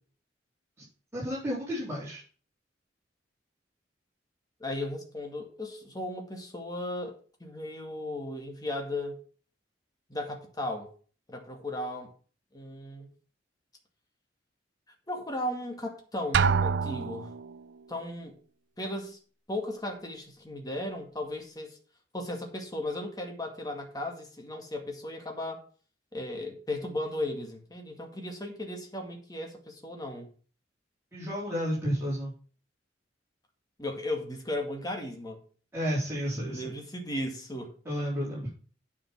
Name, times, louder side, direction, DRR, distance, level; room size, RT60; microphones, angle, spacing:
voice 1, 1.1-2.2 31.1-32.3 35.7-36.7 37.8-38.5, equal, 15° right, 4.2 m, -31 dB
voice 2, 4.6-9.2 10.1-10.9 11.3-12.1 12.5-13.1 15.1-17.3 17.9-18.3 18.8-19.2 19.5-21.8 22.1-25.6 26.1-30.3 33.8-35.4 36.4-37.7, left 1 dB, 20° left, 2.0 m, -36 dB
Drum, 16.3-17.5, right 6 dB, 65° right, 0.4 m, -26 dB
9.1 x 5.6 x 6.0 m
head